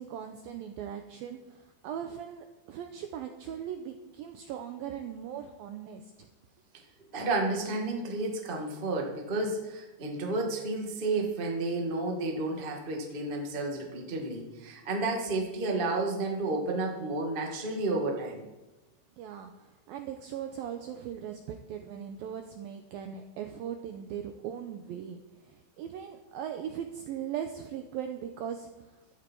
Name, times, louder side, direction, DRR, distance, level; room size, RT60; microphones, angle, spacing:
voice 1, 0.0-6.3 19.2-29.0, right 9 dB, 85° right, 6 dB, 2.1 m, -39 dB
voice 2, 7.1-18.4, right 2 dB, 50° right, 0 dB, 0.6 m, -31 dB
16.0 x 13.0 x 4.7 m, 1.1 s
omnidirectional pair, 5.2 m